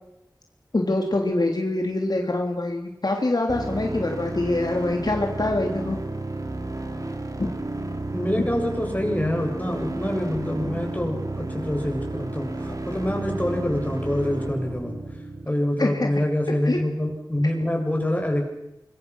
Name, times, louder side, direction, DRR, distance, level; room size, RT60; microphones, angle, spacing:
voice 1, 0.7-6.0 7.4-7.5 15.8-16.1 16.6-16.8, left 2 dB, 65° left, 2 dB, 3.2 m, -24 dB
sound 1, 3.5-15.5, right 2 dB, 50° right, 3.2 m, -32 dB
voice 2, 8.1-15.0 15.5-18.5, left 1 dB, 20° left, 1 dB, 7.5 m, -26 dB
27.0 x 23.0 x 6.3 m, 0.87 s
wide cardioid pair, 55°, 7 cm